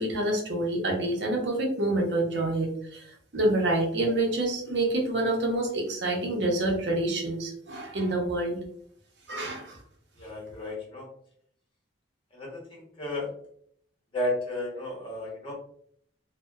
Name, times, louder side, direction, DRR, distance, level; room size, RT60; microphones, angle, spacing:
voice 1, 0.0-3.1 3.3-8.6 9.3-9.8, right 1 dB, 65° right, 0 dB, 0.7 m, -27 dB
voice 2, 10.2-11.1 12.3-13.3 14.1-15.5, left 1 dB, 30° left, -3 dB, 0.8 m, -33 dB
2.7 x 2.1 x 2.3 m, 0.64 s
head